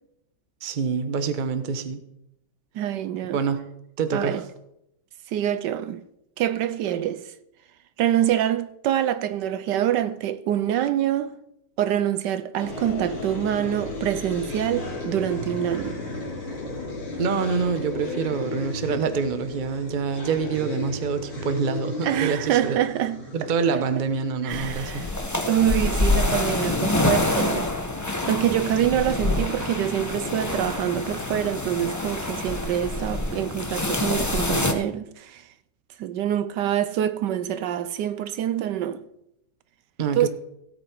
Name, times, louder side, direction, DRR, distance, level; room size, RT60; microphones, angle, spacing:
voice 1, 0.6-2.0 3.3-3.6 4.0-4.4 17.2-22.8 23.3-25.0 40.0-40.3, right 5 dB, 35° right, 0.8 m, -26 dB
voice 2, 2.7-3.4 4.1-4.4 5.3-6.0 6.4-7.3 8.0-11.4 11.8-16.0 22.0-24.0 24.4-27.7 28.3-35.5 36.0-39.0 40.1-40.3, right 11 dB, 75° right, 1.2 m, -25 dB
sound 1, 12.6-25.5, left 2 dB, 80° left, 3.8 m, -35 dB
sound 2, 24.5-34.7, left 2 dB, 15° left, 0.8 m, -26 dB
16.5 x 8.1 x 4.6 m
omnidirectional pair, 2.0 m